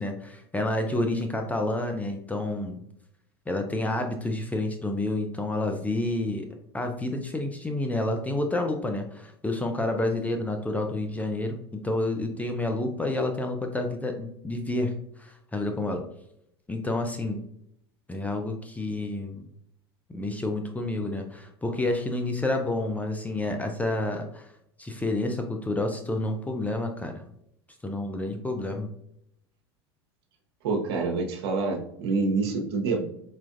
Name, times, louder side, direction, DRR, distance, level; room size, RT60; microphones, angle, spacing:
voice 1, 0.0-2.8 3.5-6.5 6.7-16.0 16.7-17.4 18.1-19.4 20.1-24.5 24.8-27.2 27.8-28.9, left 2 dB, 10° left, 4 dB, 0.4 m, -29 dB
voice 2, 30.6-33.0, right 3 dB, 70° right, 2 dB, 0.8 m, -27 dB
4.3 x 2.4 x 2.5 m, 0.74 s
hypercardioid pair, 85°, 14 cm